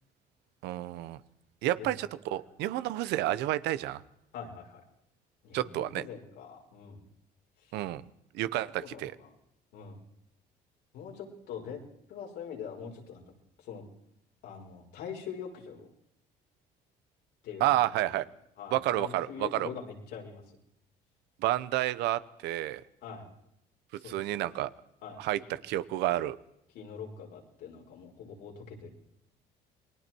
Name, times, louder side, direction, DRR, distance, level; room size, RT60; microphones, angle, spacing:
voice 1, 0.6-1.2 1.6-4.0 5.5-6.0 7.7-8.0 8.3-9.1 17.6-18.2 18.7-19.7 21.4-22.8 24.0-24.7 25.2-26.4, right 14 dB, 85° right, 14 dB, 1.0 m, -30 dB
voice 2, 4.3-4.8 5.4-7.0 8.8-9.3 9.7-10.0 10.9-11.8 12.1-13.2 13.6-13.8 14.4-15.9 17.4-17.8 18.6-20.6 23.0-23.3 23.9-24.5 25.0-25.5 26.7-28.9, left 7 dB, 80° left, 0 dB, 5.5 m, -43 dB
28.5 x 21.5 x 4.6 m, 0.78 s
cardioid pair, 110°, 17 cm